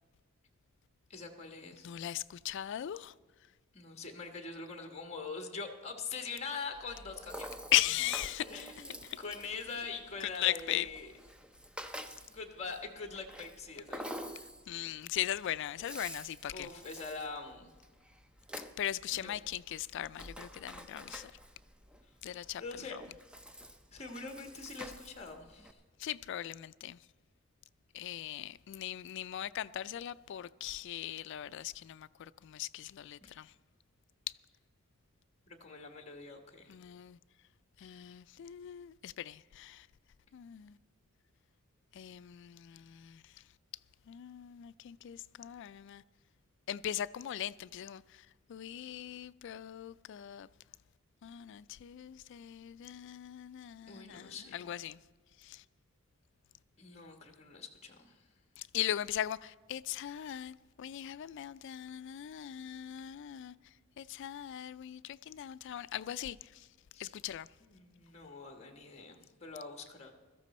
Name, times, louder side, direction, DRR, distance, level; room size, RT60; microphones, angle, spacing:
voice 1, 1.1-1.9 3.7-7.6 8.5-11.1 12.3-14.0 16.5-17.7 19.1-19.3 22.6-23.0 23.9-25.8 35.5-36.7 53.9-54.7 56.8-58.1 66.9-67.1 67.6-70.1, left 4 dB, 30° left, 1.3 m, -44 dB
voice 2, 1.8-3.1 7.7-8.6 9.0-9.2 10.3-10.9 14.7-16.7 18.6-21.3 22.2-22.6 22.9-23.0 26.0-27.0 27.9-33.5 34.3-34.4 36.7-37.2 37.8-39.9 40.3-40.8 41.9-43.4 44.1-46.0 46.7-50.5 51.2-55.0 55.4-55.6 58.6-63.5 64.0-66.7 67.0-67.5, left 12 dB, 60° left, 0.3 m, -39 dB
Rattle (instrument), 6.7-25.7, equal, 5° right, 0.5 m, -49 dB
16.5 x 13.5 x 4.2 m
head